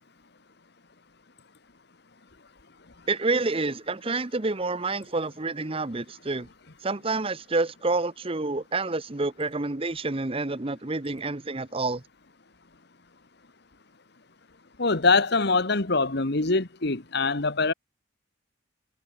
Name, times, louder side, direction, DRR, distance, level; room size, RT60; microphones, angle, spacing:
voice 1, 3.1-6.5 6.8-12.0, right 3 dB, 30° right, 0.9 m, -28 dB
voice 2, 14.8-17.7, left 3 dB, 55° left, 1.5 m, -23 dB
head